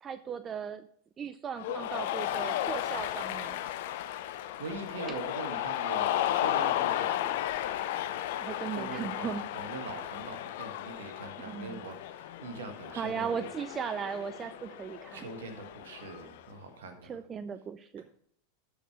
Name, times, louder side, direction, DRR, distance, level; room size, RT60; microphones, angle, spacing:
voice 1, 0.0-0.9 1.2-3.6 8.4-9.5 11.4-11.8 12.9-15.3 17.0-18.0, right 7 dB, 25° right, 13 dB, 0.4 m, -37 dB
Cheering, 1.6-16.4, left 12 dB, 60° left, 0.6 m, -34 dB
voice 2, 4.6-7.5 8.7-13.3 15.1-17.2, right 3 dB, 65° right, 6 dB, 1.6 m, -42 dB
12.5 x 5.0 x 4.8 m, 0.65 s
figure-of-eight pair, 90°, 0 cm